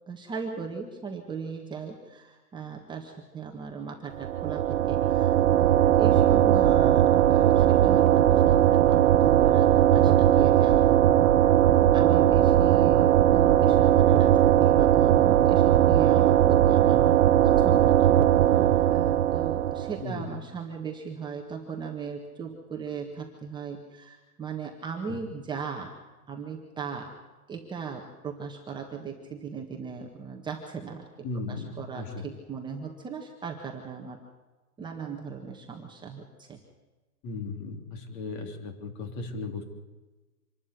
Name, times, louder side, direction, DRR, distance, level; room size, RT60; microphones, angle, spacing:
voice 1, 0.1-10.9 11.6-17.1 17.4-25.9 26.3-27.1 27.5-31.1 31.5-34.2 34.8-36.6, right 5 dB, 10° right, 1 dB, 1.6 m, -37 dB
sound 1, 4.2-20.0, right 11 dB, 55° right, 1.1 m, -19 dB
voice 2, 31.2-32.2 37.2-39.6, left 3 dB, 35° left, 6 dB, 3.4 m, -36 dB
26.0 x 12.5 x 9.8 m, 1.2 s
hypercardioid pair, 150°, 45 cm